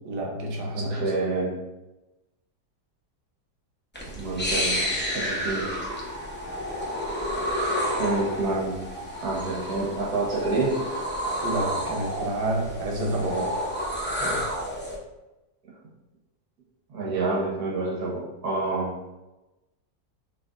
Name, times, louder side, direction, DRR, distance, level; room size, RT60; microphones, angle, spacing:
voice 1, 0.0-1.1 11.4-13.7, right 1 dB, 90° right, 0 dB, 1.5 m, -29 dB
voice 2, 0.7-1.6 4.0-5.9 8.0-8.8 9.2-10.8 16.9-19.0, right 3 dB, 70° right, -4 dB, 1.7 m, -28 dB
sound 1, 3.9-15.0, equal, 15° left, 0.4 m, -30 dB
6.2 x 3.4 x 2.5 m, 1.0 s
omnidirectional pair, 1.8 m